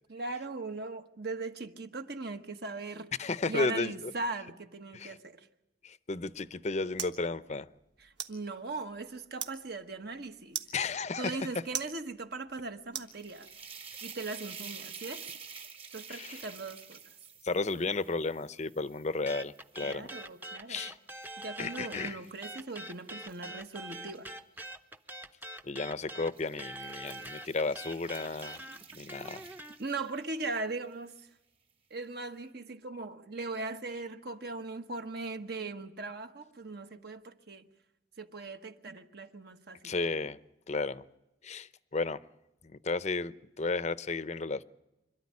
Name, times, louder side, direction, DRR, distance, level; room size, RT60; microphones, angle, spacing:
voice 1, 0.1-3.1 3.5-5.4 8.0-10.6 11.2-13.5 14.0-15.3 15.9-17.0 19.8-20.8 21.4-24.4 29.8-31.3 31.9-37.6 38.2-40.0, right 3 dB, 60° right, 1.4 m, -39 dB
voice 2, 3.2-4.1 4.9-5.2 5.8-7.7 10.7-11.5 16.1-16.5 17.4-20.1 20.7-21.0 21.6-22.2 25.6-28.6 28.9-29.4 39.8-40.4 40.7-41.0 41.4-42.2 42.6-44.6, left 3 dB, 40° left, 0.7 m, -33 dB
sound 1, 6.2-13.7, right 9 dB, 75° right, 1.6 m, -44 dB
sound 2, 12.9-20.2 20.7-24.7 25.6-25.8 26.2-30.4, right 6 dB, 30° right, 1.5 m, -50 dB
sound 3, 19.3-22.1 22.4-29.8, right 1 dB, 10° right, 0.8 m, -44 dB
26.0 x 13.0 x 9.6 m
head